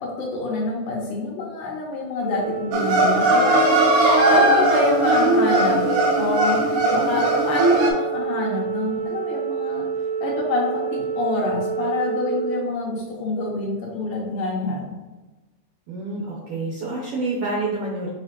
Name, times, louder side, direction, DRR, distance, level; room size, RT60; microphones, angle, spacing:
voice 1, 0.0-9.9 10.2-14.9, left 3 dB, 75° left, -2 dB, 1.3 m, -27 dB
Organ, 2.2-13.3, right 6 dB, 35° right, 1.2 m, -28 dB
sound 1, 2.7-7.9, right 1 dB, 85° right, 1.2 m, -19 dB
voice 2, 15.9-18.1, right 2 dB, 70° right, -3 dB, 1.6 m, -28 dB
5.7 x 2.9 x 2.9 m, 1.2 s
omnidirectional pair, 3.3 m